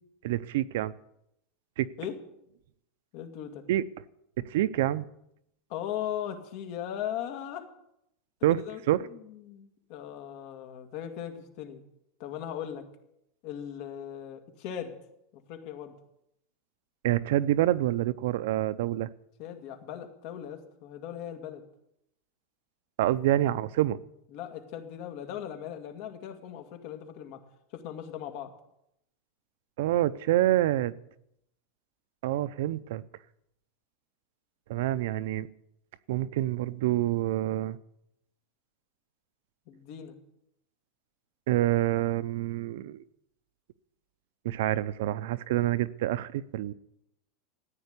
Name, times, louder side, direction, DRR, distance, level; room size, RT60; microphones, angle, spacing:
voice 1, 0.2-0.9 1.8-1.9 3.7-3.8 4.4-5.1 8.4-8.6 8.9-9.0 17.0-19.1 23.0-24.0 29.8-30.9 32.2-33.0 34.7-35.5 36.1-37.8 41.5-43.0 44.4-46.7, right 14 dB, 60° right, 16 dB, 0.6 m, -27 dB
voice 2, 3.1-3.6 5.7-7.7 8.5-11.8 12.2-12.8 13.4-14.9 15.5-15.9 19.4-21.6 24.3-27.4 27.7-28.5 39.7-40.2, left 10 dB, 45° left, 6 dB, 2.1 m, -38 dB
14.5 x 9.6 x 8.3 m, 0.79 s
supercardioid pair, 175°, 0 cm